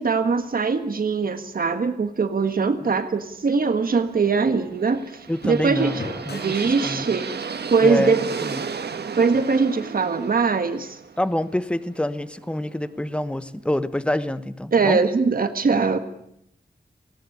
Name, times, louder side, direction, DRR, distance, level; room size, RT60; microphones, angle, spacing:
voice 1, 0.0-5.0 5.4-5.9 6.3-8.2 9.2-11.0 14.7-16.0, right 4 dB, 60° right, 8 dB, 1.6 m, -21 dB
sound 1, 3.2-9.3, left 2 dB, 80° left, 6.1 m, -44 dB
sound 2, 4.8-12.7, right 5 dB, 90° right, 1.5 m, -33 dB
voice 2, 5.3-7.1 7.8-8.6 11.2-15.0, left 1 dB, 5° left, 13 dB, 1.0 m, -27 dB
19.5 x 17.5 x 9.9 m, 0.75 s
wide cardioid pair, 125°, 16 cm